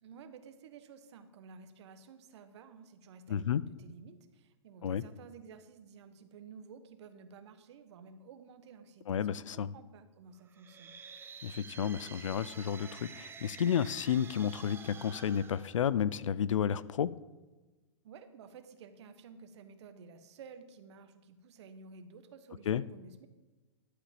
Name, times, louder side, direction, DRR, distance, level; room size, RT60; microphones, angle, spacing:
voice 1, 0.0-10.9 18.0-23.3, right 5 dB, 60° right, 9 dB, 1.2 m, -53 dB
voice 2, 3.3-3.6 4.8-5.0 9.1-9.7 11.4-17.1 22.7-22.8, left 8 dB, 80° left, 19 dB, 0.5 m, -31 dB
sound 1, 10.5-16.4, right 6 dB, 15° right, 0.7 m, -50 dB
12.0 x 5.0 x 7.4 m, 1.2 s
hypercardioid pair, 125°, 16 cm